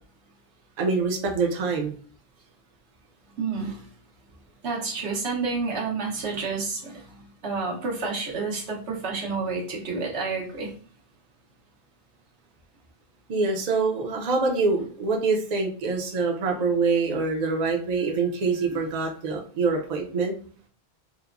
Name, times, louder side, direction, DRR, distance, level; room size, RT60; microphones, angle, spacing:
voice 1, 0.8-1.9 13.3-20.3, right 4 dB, 50° right, 2 dB, 0.5 m, -25 dB
voice 2, 3.4-3.9 4.6-10.7 18.7-18.8, right 4 dB, 85° right, -2 dB, 1.1 m, -30 dB
2.9 x 2.1 x 2.4 m, 0.43 s
omnidirectional pair, 1.1 m